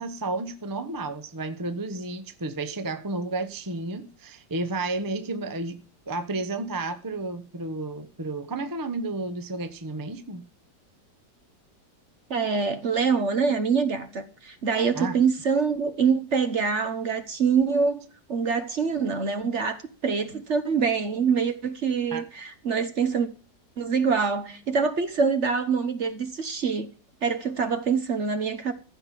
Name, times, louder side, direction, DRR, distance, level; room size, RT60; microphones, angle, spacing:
voice 1, 0.0-5.8 6.1-10.4 14.9-15.2 22.1-22.2, right 2 dB, 20° right, 0.6 m, -32 dB
voice 2, 12.3-23.3 23.8-26.9 27.2-28.7, right 5 dB, 45° right, 1.1 m, -25 dB
15.0 x 5.6 x 7.4 m
omnidirectional pair, 2.0 m